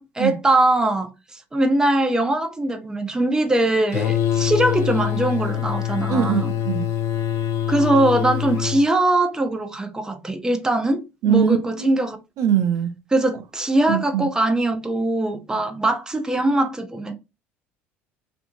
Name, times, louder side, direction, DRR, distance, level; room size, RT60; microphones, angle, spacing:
voice 1, 0.0-6.5 7.7-12.2 13.1-17.1, right 1 dB, 10° right, 0.6 m, -21 dB
sound 1, 3.9-8.9, left 10 dB, 60° left, 0.4 m, -24 dB
voice 2, 6.1-6.9 11.2-11.9 12.4-12.9 13.9-14.3, right 8 dB, 65° right, 0.5 m, -21 dB
2.6 x 2.5 x 2.6 m
hypercardioid pair, 70°, 6 cm